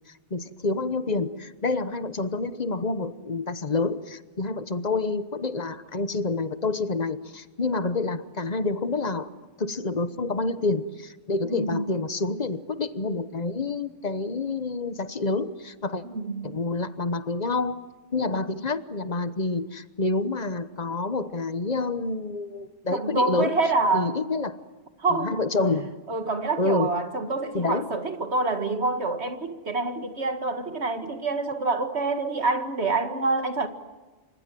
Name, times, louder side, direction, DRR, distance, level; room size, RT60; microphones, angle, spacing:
voice 1, 0.3-9.3 9.6-16.0 16.4-17.8 18.1-23.6 23.9-24.6 25.1-25.9 26.6-26.9 27.5-27.9, left 3 dB, 40° left, 1.2 m, -28 dB
voice 2, 11.5-11.9 16.0-16.6 22.9-24.1 25.0-25.3 26.1-33.7, right 3 dB, 70° right, 2.2 m, -26 dB
27.5 x 25.5 x 7.6 m
omnidirectional pair, 1.1 m